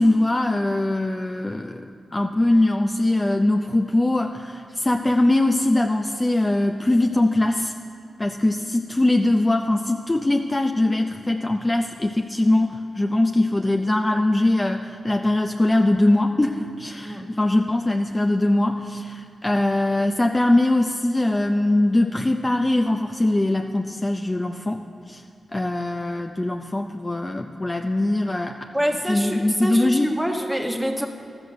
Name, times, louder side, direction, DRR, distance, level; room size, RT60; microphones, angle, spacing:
voice 1, 0.0-1.9 2.1-7.7 8.2-25.2 25.5-28.6 29.0-30.1, left 1 dB, 25° left, 4 dB, 0.5 m, -21 dB
voice 2, 28.7-31.1, equal, 5° right, 2 dB, 1.4 m, -26 dB
13.0 x 6.4 x 6.7 m, 2.6 s
cardioid pair, 55°, 0 cm